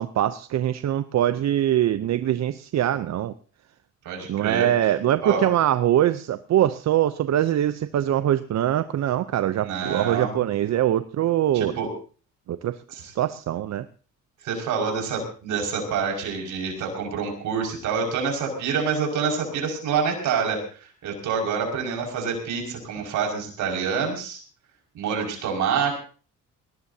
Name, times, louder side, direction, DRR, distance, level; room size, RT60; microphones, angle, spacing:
voice 1, 0.0-3.3 4.3-11.7 12.5-12.8 13.2-13.9, right 12 dB, 60° right, 12 dB, 0.7 m, -23 dB
voice 2, 4.0-4.9 5.2-5.4 9.6-10.3 11.5-11.9 12.9-13.1 14.4-24.4 24.9-26.0, right 6 dB, 80° right, 1 dB, 5.7 m, -27 dB
21.0 x 18.5 x 2.8 m, 0.38 s
cardioid pair, 90°, 30 cm